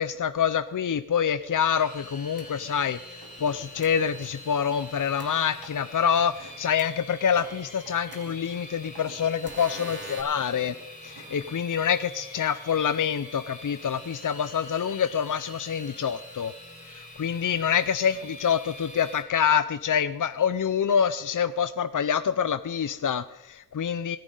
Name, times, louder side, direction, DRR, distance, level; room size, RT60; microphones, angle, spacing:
voice 1, 0.0-10.7 11.0-16.5 16.9-24.2, left 7 dB, 55° left, 12 dB, 0.6 m, -26 dB
sound 1, 1.4-19.2, left 1 dB, 20° left, 4.8 m, -45 dB
sound 2, 2.4-2.5 3.8-3.9 5.2-5.3 6.8-6.9 8.1-8.2 9.4-10.2, right 1 dB, 30° right, 3.2 m, -41 dB
sound 3, 2.5-4.4 4.7-5.2 5.5-5.8 6.1-6.7 7.0-11.8, right 3 dB, 85° right, 5.1 m, -50 dB
27.0 x 10.5 x 3.9 m, 0.94 s
cardioid pair, 45°, 37 cm